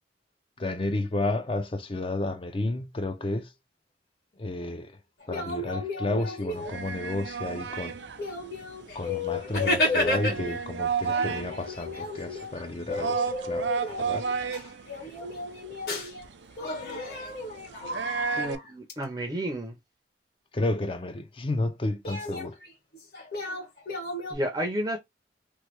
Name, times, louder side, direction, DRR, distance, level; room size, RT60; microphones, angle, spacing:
voice 1, 0.6-3.5 4.4-5.0 5.3-8.0 8.9-13.7 14.0-14.3 20.5-22.6, left 2 dB, 30° left, 0.4 m, -31 dB
sound 1, 5.2-7.0 7.7-7.8 8.2-10.6 11.0-16.3 16.6-18.9 22.0-24.4, left 2 dB, 60° left, 1.5 m, -32 dB
sound 2, 6.5-18.6, right 6 dB, 80° right, 0.5 m, -34 dB
voice 2, 18.4-19.7 24.3-25.0, equal, 20° right, 0.5 m, -31 dB
3.1 x 2.2 x 3.0 m
head